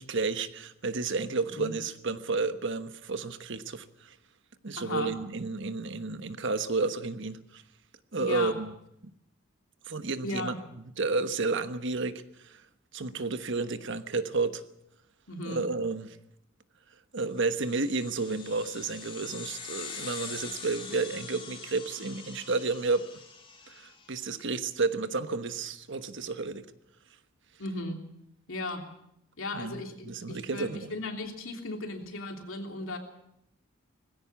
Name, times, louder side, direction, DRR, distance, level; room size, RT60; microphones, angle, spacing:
voice 1, 0.0-4.1 4.6-7.6 8.1-8.7 9.9-10.5 11.0-12.6 12.9-14.6 15.5-16.1 17.1-23.1 23.7-26.6 29.5-30.9, right 3 dB, 60° right, 1.2 m, -31 dB
voice 2, 4.8-5.1 8.2-8.6 10.2-10.6 15.3-15.6 27.6-28.0 28.5-28.9 29.4-33.0, left 2 dB, 70° left, 3.2 m, -36 dB
sound 1, 17.4-24.2, left 5 dB, 25° left, 3.1 m, -44 dB
19.5 x 16.0 x 8.4 m
head